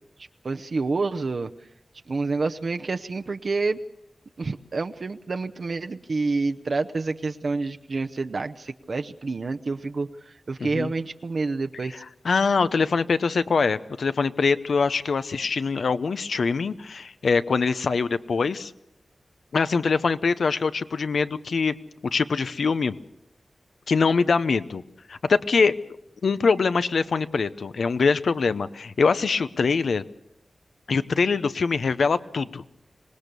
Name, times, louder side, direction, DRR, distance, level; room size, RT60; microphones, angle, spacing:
voice 1, 0.4-1.5 2.1-3.8 4.4-11.9, right 3 dB, 60° right, 7 dB, 0.7 m, -28 dB
voice 2, 12.2-18.7 19.5-21.7 22.1-22.9 23.9-24.8 25.1-25.7 26.2-30.0 30.9-32.6, left 4 dB, 85° left, 12 dB, 0.8 m, -23 dB
25.5 x 19.0 x 6.8 m, 0.82 s
wide cardioid pair, 100°, 0 cm